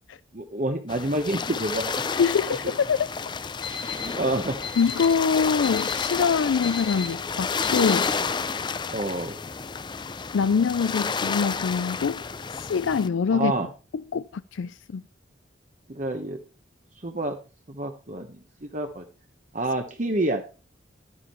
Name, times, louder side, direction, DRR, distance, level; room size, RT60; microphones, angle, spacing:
voice 1, 0.3-2.0 2.5-2.6 4.0-4.6 8.9-9.4 13.3-13.7 15.9-16.4 17.0-17.4 17.7-19.0 19.5-20.4, right 1 dB, 40° right, 1.0 m, -28 dB
sound 1, 0.9-13.1, left 5 dB, 25° left, 0.4 m, -30 dB
voice 2, 2.2-3.1 3.9-4.0 4.8-8.1 10.3-12.2 12.5-13.5 14.1-15.0, left 6 dB, 85° left, 0.4 m, -24 dB
Alarm, 3.4-8.4, left 5 dB, 50° left, 2.5 m, -37 dB
12.0 x 9.8 x 3.1 m
head